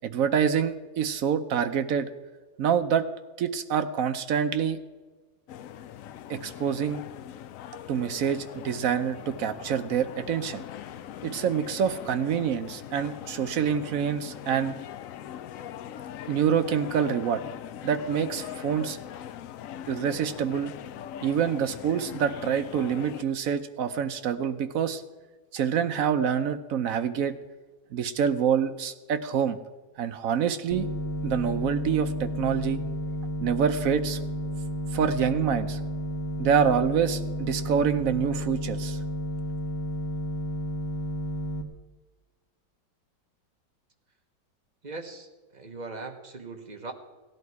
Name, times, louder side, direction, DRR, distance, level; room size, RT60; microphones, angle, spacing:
voice 1, 0.0-2.1 2.6-3.1 3.4-4.8 6.3-7.0 7.9-10.6 11.2-14.8 16.3-17.4 17.8-19.0 19.9-20.7 21.2-25.0 25.5-27.3 27.9-29.6 30.0-30.9 31.2-32.8 33.4-34.2 34.9-35.8 36.4-39.0, right 8 dB, 65° right, 9 dB, 0.9 m, -26 dB
sound 1, 5.5-23.2, left 10 dB, 90° left, 0.7 m, -41 dB
sound 2, 30.7-41.6, left 1 dB, 45° left, 1.4 m, -32 dB
voice 2, 44.8-45.3 45.5-46.9, right 3 dB, 30° right, 4 dB, 0.9 m, -39 dB
17.0 x 11.0 x 4.7 m, 1.3 s
omnidirectional pair, 2.0 m